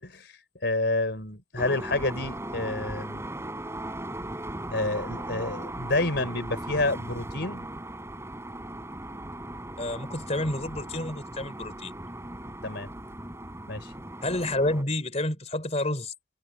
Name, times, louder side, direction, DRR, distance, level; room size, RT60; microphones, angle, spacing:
voice 1, 0.0-0.3 0.6-3.3 4.7-7.7 12.6-12.9 13.7-13.9, left 2 dB, 60° left, 4.1 m, -29 dB
sound 1, 1.6-14.8, right 1 dB, 15° right, 5.8 m, -38 dB
voice 2, 9.8-11.9 14.2-16.1, left 1 dB, 35° left, 3.9 m, -29 dB
head